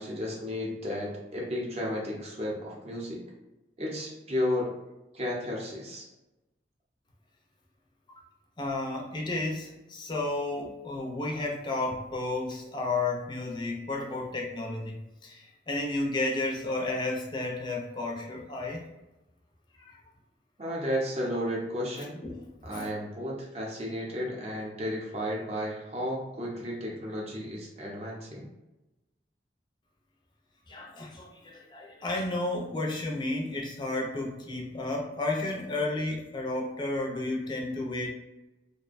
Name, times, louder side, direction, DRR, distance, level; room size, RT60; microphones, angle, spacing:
voice 1, 0.0-3.2 3.8-4.7 5.1-6.0 20.6-22.1 22.6-28.5, equal, 35° right, -3 dB, 0.6 m, -33 dB
voice 2, 8.6-18.8 19.8-20.0 22.0-22.4 22.7-22.9 30.7-38.1, left 2 dB, 25° left, 0 dB, 0.4 m, -32 dB
2.5 x 2.1 x 2.4 m, 1.0 s
head